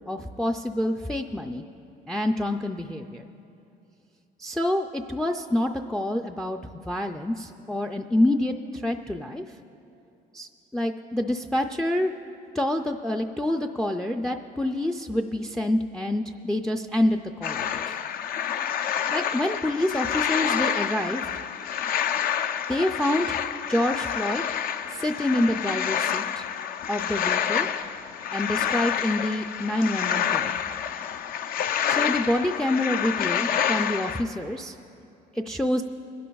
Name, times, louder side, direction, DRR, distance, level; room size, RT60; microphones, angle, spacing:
voice 1, 0.1-1.6 2.1-3.3 4.4-9.4 10.3-12.1 12.5-18.0 19.1-21.3 22.7-23.4 23.7-24.4 24.9-26.5 26.9-27.7 28.3-30.5 31.9-34.8 35.3-35.8, left 1 dB, 5° left, 5 dB, 0.3 m, -27 dB
sound 1, 17.4-34.2, left 8 dB, 60° left, 0.5 m, -28 dB
27.0 x 11.0 x 2.3 m, 2.7 s
cardioid pair, 110°, 17 cm